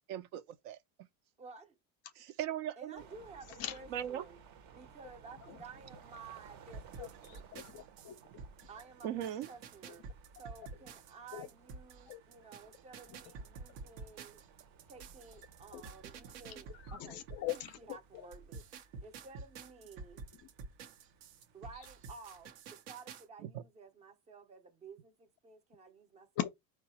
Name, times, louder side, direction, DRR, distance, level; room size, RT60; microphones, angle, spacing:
voice 1, 0.1-0.8 2.2-3.0 3.9-4.3 9.0-9.5, right 11 dB, 70° right, 0.7 m, -38 dB
voice 2, 1.4-1.8 2.8-4.4 4.7-7.4 8.7-10.1 10.4-14.4 14.9-18.6 19.0-20.3 21.5-26.5, right 4 dB, 15° right, 0.5 m, -53 dB
sound 1, 3.0-22.5, right 6 dB, 45° right, 0.8 m, -60 dB
sound 2, 6.7-17.9 18.3-23.2, right 4 dB, 90° right, 1.0 m, -50 dB
voice 3, 7.0-8.2 11.3-11.5 12.1-12.2 15.7-15.8 16.5-18.0 26.4-26.5, left 12 dB, 40° left, 0.5 m, -40 dB
4.8 x 2.3 x 4.1 m
cardioid pair, 165°, 40 cm